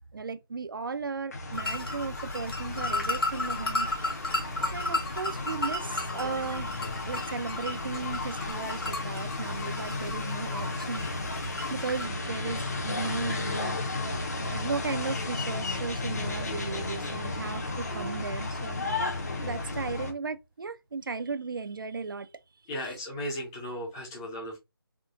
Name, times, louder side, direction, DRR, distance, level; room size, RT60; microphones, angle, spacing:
voice 1, 0.1-3.9 4.7-6.7 7.1-11.1 11.7-13.8 14.4-19.1 19.4-22.3, right 4 dB, 65° right, 0.5 m, -36 dB
sound 1, 1.3-20.1, left 2 dB, 45° left, 0.9 m, -34 dB
sound 2, 1.5-12.1, left 2 dB, 75° left, 1.3 m, -34 dB
voice 2, 22.7-24.6, equal, 10° left, 0.6 m, -36 dB
3.6 x 2.7 x 2.5 m
figure-of-eight pair, 170°, 12 cm